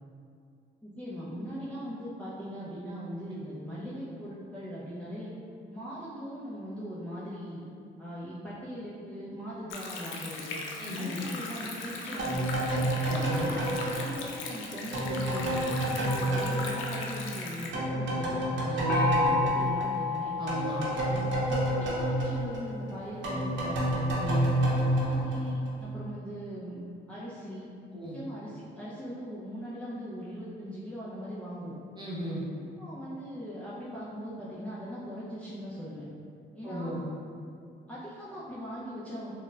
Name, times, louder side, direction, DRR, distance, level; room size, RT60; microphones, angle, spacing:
voice 1, 0.8-5.3 5.7-7.6 8.0-10.6 10.9-12.9 13.6-20.4 21.1-24.2 24.7-26.8 27.1-31.8 32.5-36.0 36.5-36.9 37.9-39.3, equal, 5° left, -10 dB, 0.5 m, -40 dB
Stream, 9.7-17.7, left 3 dB, 85° left, 0.4 m, -39 dB
voice 2, 10.8-11.2 13.0-13.5 18.7-19.3 20.4-20.9 24.2-24.6 27.9-28.2 32.0-32.4 36.6-37.0, right 1 dB, 20° right, -7 dB, 0.8 m, -35 dB
sound 1, 12.2-17.4 17.7-25.9, right 1 dB, 70° right, 0.7 m, -29 dB
Gong, 18.9-22.4, left 4 dB, 50° left, 0.7 m, -31 dB
4.0 x 2.1 x 2.3 m, 2.4 s
cardioid pair, 90°, 20 cm